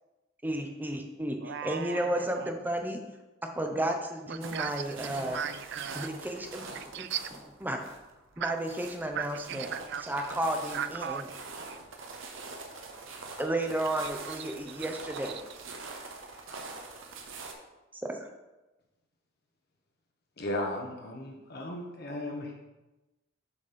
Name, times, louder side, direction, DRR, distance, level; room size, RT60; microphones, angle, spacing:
voice 1, 0.4-3.0 3.6-5.4 5.9-6.6 7.0-7.1 7.6-7.8 8.4-9.7 10.0-11.2 13.4-15.3 17.9-18.2, right 1 dB, 10° right, 4 dB, 0.7 m, -32 dB
voice 2, 1.4-2.5 4.3-6.1 6.9-7.2 8.4-8.5 9.1-10.1 10.7-11.8 14.2-14.4, right 8 dB, 60° right, 12 dB, 0.4 m, -37 dB
sound 1, 4.4-17.5, right 3 dB, 80° right, 1.0 m, -44 dB
voice 3, 20.4-22.5, left 1 dB, 55° left, 0 dB, 1.1 m, -35 dB
7.2 x 4.2 x 5.2 m, 1.1 s
head